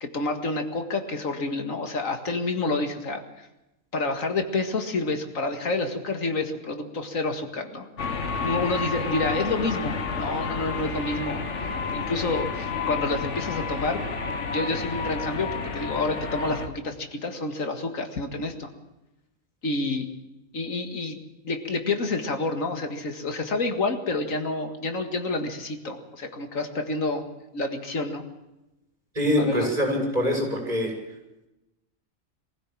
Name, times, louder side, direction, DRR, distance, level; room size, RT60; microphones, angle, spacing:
voice 1, 0.0-3.5 3.9-7.9 8.4-11.4 11.9-14.0 14.5-18.7 19.6-20.1 20.5-21.2 21.4-27.3 27.5-28.2 29.4-29.7, left 3 dB, 85° left, 6 dB, 2.3 m, -28 dB
sound 1, 8.0-16.7, left 4 dB, 65° left, 1.7 m, -30 dB
voice 2, 29.1-30.9, left 1 dB, 30° right, 0 dB, 6.7 m, -24 dB
23.0 x 15.5 x 7.5 m, 0.95 s
omnidirectional pair, 1.4 m